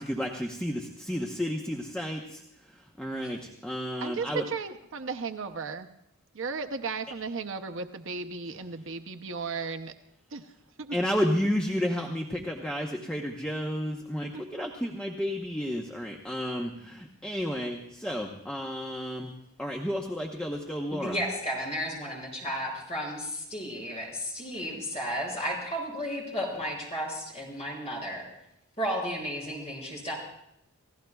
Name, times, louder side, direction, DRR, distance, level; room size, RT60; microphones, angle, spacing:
voice 1, 0.0-2.4 3.0-4.4 10.9-19.3 19.6-21.2, equal, 5° left, 0 dB, 0.9 m, -31 dB
voice 2, 4.0-5.9 6.3-9.9 10.3-10.5 10.8-11.0 14.3-14.6, right 4 dB, 55° right, 7 dB, 0.7 m, -35 dB
voice 3, 20.9-28.2 28.8-30.1, equal, 30° left, -3 dB, 6.1 m, -33 dB
29.5 x 16.0 x 2.3 m, 0.80 s
head